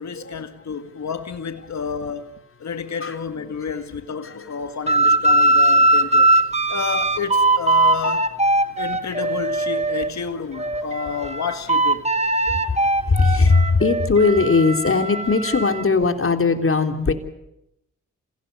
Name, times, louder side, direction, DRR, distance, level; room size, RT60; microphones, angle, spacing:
voice 1, 0.0-6.3 6.7-8.3 8.8-12.0, left 6 dB, 60° left, 1.9 m, -30 dB
voice 2, 3.0-3.4 4.2-4.5 11.2-11.3 12.5-12.8 13.0-17.1, left 4 dB, 40° left, 3.4 m, -19 dB
sound 1, 4.9-10.1 10.5-15.8, right 2 dB, 20° right, 1.9 m, -20 dB
27.0 x 16.5 x 9.4 m
cardioid pair, 55°, 32 cm